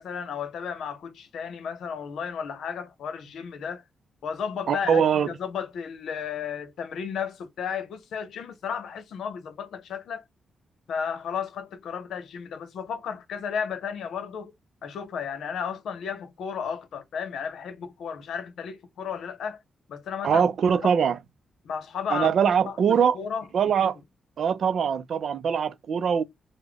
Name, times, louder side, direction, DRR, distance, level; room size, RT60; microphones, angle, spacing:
voice 1, 0.0-3.8 4.2-10.2 10.9-14.5 14.8-19.6 19.9-20.5 20.8-20.9 21.6-22.8 23.1-23.9, left 7 dB, 75° left, 0.7 m, -33 dB
voice 2, 4.7-5.3 20.2-21.2 22.1-23.2 23.5-24.0 24.4-26.2, right 7 dB, 60° right, 0.4 m, -22 dB
3.5 x 2.1 x 3.4 m
wide cardioid pair, 145°, 0 cm